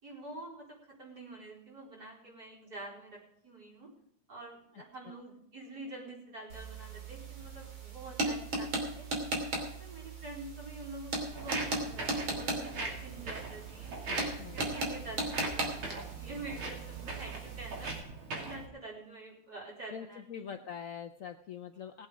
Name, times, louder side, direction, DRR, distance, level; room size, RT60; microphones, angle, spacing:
voice 1, 0.0-3.9 4.3-9.1 9.5-13.9 14.5-17.9 18.3-20.5, right 2 dB, 45° right, -4 dB, 4.9 m, -47 dB
sound 1, 6.5-18.0, right 2 dB, 70° right, 3.7 m, -37 dB
Walk footsteps, 11.3-18.7, right 3 dB, 90° right, 3.6 m, -41 dB
voice 2, 14.0-14.7 19.9-22.1, left 8 dB, 80° left, 7 dB, 0.7 m, -44 dB
19.0 x 8.2 x 5.1 m, 0.73 s
omnidirectional pair, 2.3 m